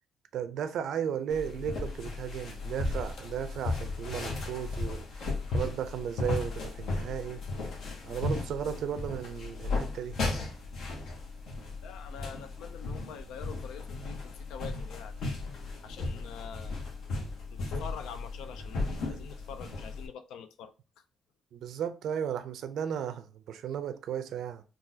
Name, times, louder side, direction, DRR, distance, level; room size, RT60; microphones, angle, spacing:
voice 1, 0.3-7.4 8.0-10.2 21.5-24.6, right 8 dB, 75° right, 0.4 m, -35 dB
sound 1, 1.3-20.1, left 3 dB, 75° left, 0.9 m, -35 dB
voice 2, 11.8-15.1 15.8-16.7 17.5-21.0, left 7 dB, 90° left, 0.3 m, -45 dB
3.8 x 2.3 x 2.7 m
cardioid pair, 90°, 0 cm